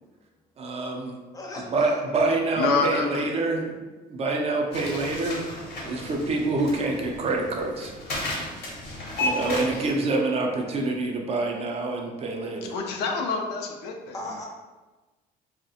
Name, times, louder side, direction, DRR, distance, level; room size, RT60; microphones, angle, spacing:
voice 1, 0.6-1.2 1.7-3.8 4.1-5.4 5.8-7.9 9.2-12.7, right 2 dB, 40° right, 1 dB, 0.4 m, -26 dB
voice 2, 1.3-2.0 14.1-14.5, left 1 dB, 20° left, -1 dB, 0.5 m, -36 dB
voice 3, 2.6-3.3 12.6-14.2, left 3 dB, 90° left, 2 dB, 0.4 m, -27 dB
sound 1, 4.7-9.9, left 1 dB, 70° left, 0.8 m, -33 dB
2.3 x 2.0 x 2.7 m, 1.2 s
cardioid pair, 110°, 17 cm